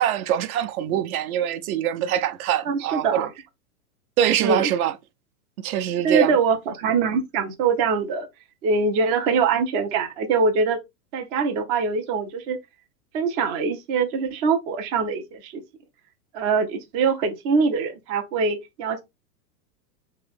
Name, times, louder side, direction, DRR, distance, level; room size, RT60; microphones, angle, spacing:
voice 1, 0.0-3.3 4.2-4.9 5.6-6.4, right 11 dB, 60° right, 0.8 m, -23 dB
voice 2, 2.7-3.3 4.4-4.7 6.0-8.3 8.6-10.8 11.1-12.6 13.1-15.6 16.3-19.0, right 5 dB, 20° right, 0.4 m, -23 dB
4.6 x 3.3 x 3.4 m
hypercardioid pair, 135°, 49 cm